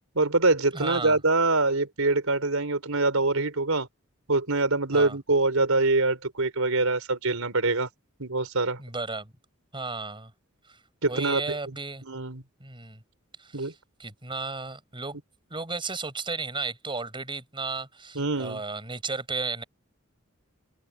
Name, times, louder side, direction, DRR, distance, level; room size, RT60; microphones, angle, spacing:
voice 1, 0.1-3.9 4.3-7.9 8.2-8.8 11.0-11.4 11.7-11.8 12.0-12.4 13.5-13.7 18.1-18.6, right 3 dB, 80° right, 4.3 m, -24 dB
voice 2, 0.7-1.2 4.9-5.2 8.8-9.3 9.7-10.3 10.7-10.8 11.1-12.0 12.6-13.0 13.4-13.7 14.0-15.2 15.5-19.6, right 3 dB, 25° right, 5.7 m, -34 dB
open air
head